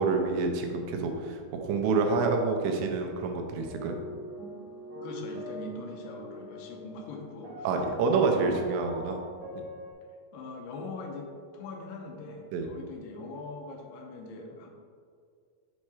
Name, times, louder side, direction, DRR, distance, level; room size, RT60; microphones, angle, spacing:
voice 1, 0.0-3.9 7.6-9.2 9.5-9.6 12.5-12.7, right 4 dB, 85° right, 4 dB, 3.0 m, -27 dB
sound 1, 3.6-7.1 7.4-9.9, left 1 dB, 65° right, 1.2 m, -43 dB
voice 2, 5.0-7.7 8.1-8.5 10.3-14.7, left 3 dB, 75° left, 1 dB, 2.7 m, -42 dB
7.3 x 4.2 x 4.8 m, 2.2 s
omnidirectional pair, 5.0 m